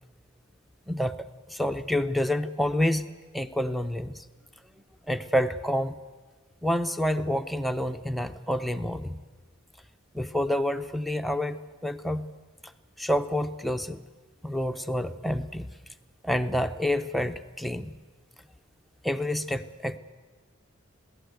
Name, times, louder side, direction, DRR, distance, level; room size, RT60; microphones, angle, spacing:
voice 1, 0.9-1.2 1.5-3.0 3.3-4.2 5.1-6.0 6.6-9.2 10.1-12.3 13.0-14.0 14.4-15.7 16.2-17.9 19.0-20.0, left 1 dB, ahead, 7 dB, 0.6 m, -28 dB
21.0 x 17.0 x 8.0 m, 1.3 s
head